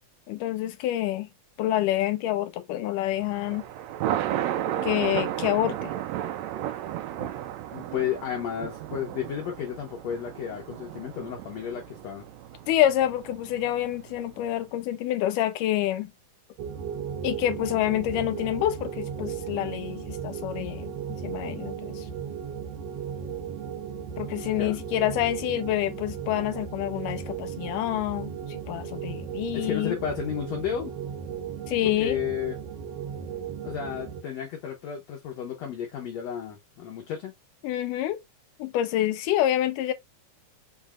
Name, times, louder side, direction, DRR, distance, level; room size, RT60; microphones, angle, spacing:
voice 1, 0.3-1.3 1.6-3.6 4.8-5.9 12.7-16.1 17.2-20.9 21.2-22.0 24.2-30.0 31.7-32.2 37.6-38.2 38.6-39.9, left 13 dB, 90° left, 2.2 m, -27 dB
Thunder, 3.2-14.5, right 12 dB, 90° right, 1.5 m, -34 dB
voice 2, 7.7-12.3 24.6-24.8 29.5-31.0 32.0-32.6 33.6-37.3, left 9 dB, 65° left, 1.8 m, -32 dB
sound 1, 16.6-34.2, right 7 dB, 70° right, 1.7 m, -36 dB
5.8 x 3.5 x 2.4 m
omnidirectional pair, 3.8 m